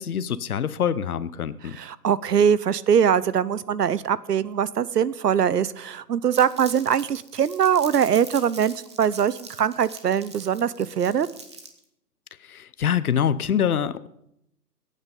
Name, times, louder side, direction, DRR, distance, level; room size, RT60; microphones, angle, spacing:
voice 1, 0.0-1.8 12.4-14.1, left 8 dB, 65° left, 16 dB, 0.9 m, -25 dB
voice 2, 1.8-11.3, right 8 dB, 75° right, 19 dB, 0.8 m, -22 dB
Crumpling crinkling, 6.3-11.8, right 4 dB, 20° right, 0.7 m, -43 dB
17.5 x 8.9 x 5.1 m, 0.77 s
hypercardioid pair, 155°, 48 cm